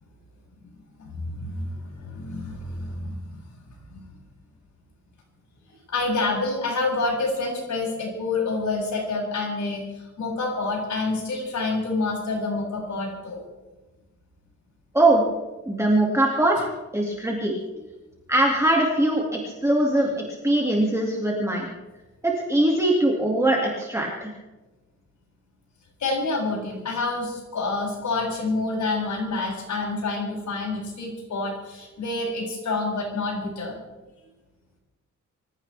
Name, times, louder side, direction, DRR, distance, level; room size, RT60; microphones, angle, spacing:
voice 1, 1.0-3.4 3.9-4.0 5.9-13.4 26.0-33.8, left 3 dB, 70° left, -2 dB, 7.8 m, -28 dB
voice 2, 15.7-16.6 16.9-17.5 18.3-21.7 22.2-24.3, right 1 dB, 10° right, -2 dB, 2.3 m, -21 dB
25.0 x 16.0 x 3.5 m, 1.2 s
wide cardioid pair, 155°, 31 cm